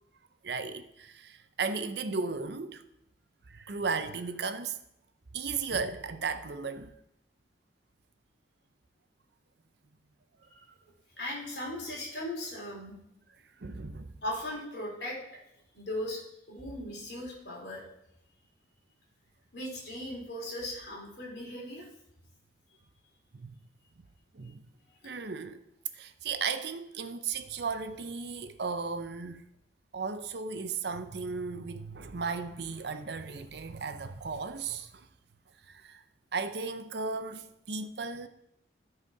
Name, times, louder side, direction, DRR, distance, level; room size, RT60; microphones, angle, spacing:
voice 1, 0.4-2.8 3.5-4.8 5.3-6.9 13.6-14.1 14.5-14.6 23.3-23.6 24.3-24.7 25.0-25.6 25.9-29.4 29.9-35.1 35.7-36.0 36.3-38.3, right 4 dB, 60° right, 0.6 m, -35 dB
voice 2, 11.1-13.0 14.2-15.2 15.7-17.8 19.5-21.9, left 1 dB, 60° left, 3.3 m, -38 dB
13.0 x 4.9 x 4.7 m
head